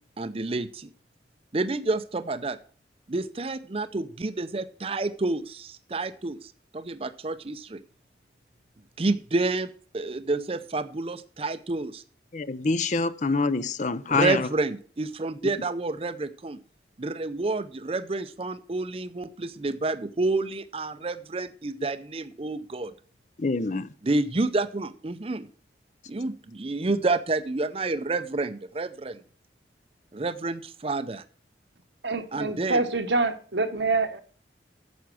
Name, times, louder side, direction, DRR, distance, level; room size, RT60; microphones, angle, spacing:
voice 1, 0.2-0.9 1.5-2.6 3.1-7.8 9.0-9.7 9.9-12.0 14.1-16.6 17.0-22.9 24.0-25.5 26.1-29.2 30.1-31.2 32.3-32.8, right 2 dB, 30° right, 0.6 m, -29 dB
voice 2, 12.3-14.5 23.4-23.9, left 3 dB, 40° left, 0.6 m, -26 dB
voice 3, 32.0-34.2, right 3 dB, 80° right, 1.2 m, -26 dB
9.5 x 7.1 x 6.2 m
head